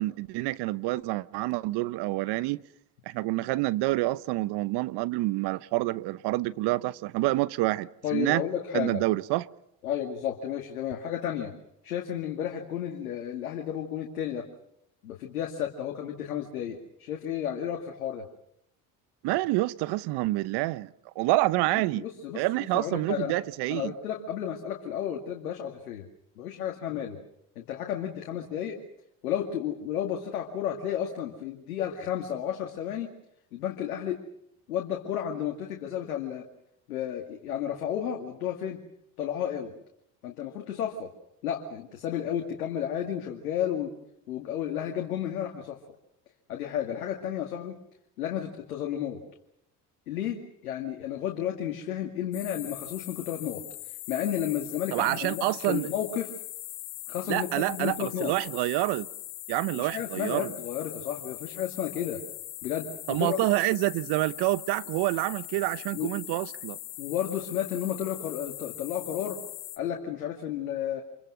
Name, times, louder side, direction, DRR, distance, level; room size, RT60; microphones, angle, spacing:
voice 1, 0.0-2.6 3.1-8.4 8.7-9.5 19.2-22.0 22.3-23.9 54.9-55.9 57.3-59.1 59.5-60.5 63.1-66.8, right 19 dB, 65° right, 0.9 m, -27 dB
voice 2, 8.0-9.0 9.8-11.5 11.8-14.5 15.0-18.2 21.7-23.3 23.7-26.0 26.4-27.2 27.6-28.8 29.2-33.1 33.5-34.2 34.7-36.4 36.9-38.8 39.2-39.7 40.2-41.1 41.4-43.9 44.3-45.8 46.5-47.8 48.2-49.2 50.1-56.3 57.1-58.3 59.8-62.2 62.6-63.4 65.9-66.1 67.0-69.4 69.8-71.0, left 10 dB, 90° left, 2.3 m, -32 dB
sound 1, 52.3-69.8, left 16 dB, 65° left, 2.5 m, -41 dB
27.5 x 23.0 x 6.2 m
hypercardioid pair, 75°, 44 cm